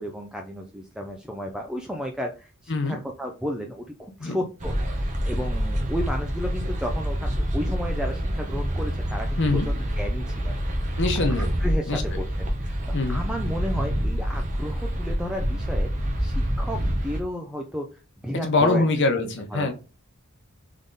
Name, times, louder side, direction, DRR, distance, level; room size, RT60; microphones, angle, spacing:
voice 1, 0.0-9.4 9.7-10.6 11.4-12.8 13.1-15.9 16.2-17.9 18.2-18.8 19.2-19.7, equal, 5° right, 2 dB, 0.5 m, -33 dB
sound 1, 4.6-17.2, equal, 35° right, 1.0 m, -27 dB
voice 2, 9.4-9.7 11.0-11.5 11.9-12.2 12.9-13.2 18.4-19.7, left 3 dB, 55° left, 5 dB, 1.0 m, -24 dB
3.7 x 3.5 x 3.9 m, 0.33 s
head